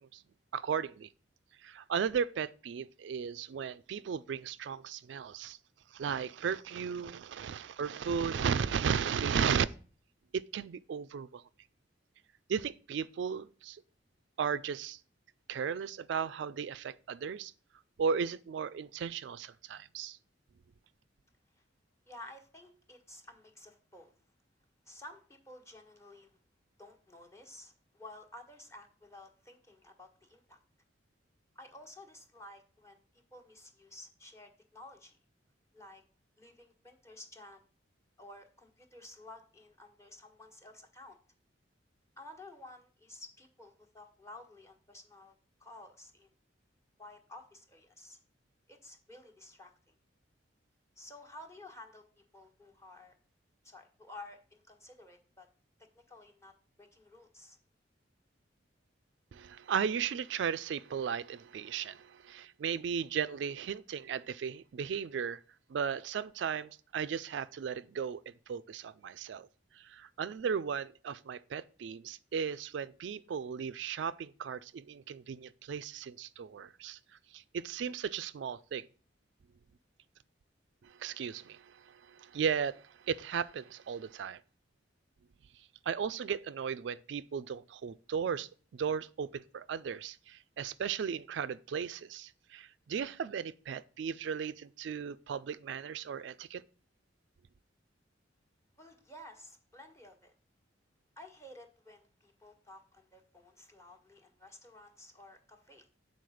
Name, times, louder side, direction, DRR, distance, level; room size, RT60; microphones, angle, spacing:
voice 1, 0.5-1.1 1.6-5.6 5.9-9.7 10.3-11.4 12.5-13.8 14.4-15.0 15.5-17.5 18.0-20.2 59.3-65.4 65.7-69.5 69.7-77.0 77.3-78.9 80.8-84.4 85.9-96.6, right 7 dB, 70° right, 0.3 m, -35 dB
voice 2, 22.1-24.1 24.8-26.4 26.8-30.6 31.5-35.2 35.7-36.0 36.4-37.7 38.2-41.2 42.2-45.3 45.6-46.3 47.0-48.2 48.7-49.9 51.0-52.0 52.3-53.2 53.6-55.5 55.8-57.6 98.8-100.3 101.2-105.9, left 1 dB, 15° left, 1.3 m, -53 dB
8.5 x 4.1 x 6.3 m
head